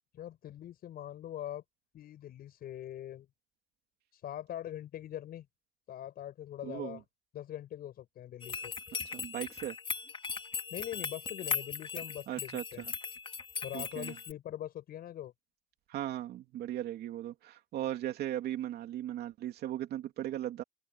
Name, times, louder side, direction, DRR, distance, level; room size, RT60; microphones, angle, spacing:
voice 1, 0.1-1.6 1.9-3.3 4.1-5.5 5.9-7.0 7.3-8.7 10.7-12.9 13.6-15.3, left 11 dB, 65° left, 7.4 m, -42 dB
voice 2, 6.6-7.0 8.9-9.8 12.3-12.8 13.7-14.1 15.9-20.6, right 12 dB, 70° right, 3.1 m, -38 dB
sound 1, 8.4-14.3, left 5 dB, 30° left, 3.6 m, -38 dB
open air
cardioid pair, 110°, 17 cm